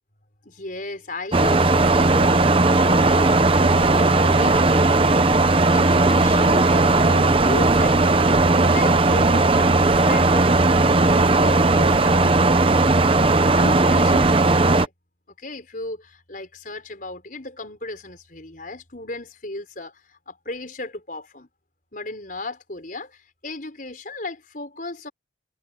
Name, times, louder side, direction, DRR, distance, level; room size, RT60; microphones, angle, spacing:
voice 1, 0.4-5.1 5.7-8.4 8.7-10.5 11.1-12.4 12.7-14.9 15.4-21.5 21.9-25.1, left 2 dB, 45° left, 5.7 m, -35 dB
sound 1, 1.3-14.9, right 2 dB, 30° right, 0.9 m, -17 dB
head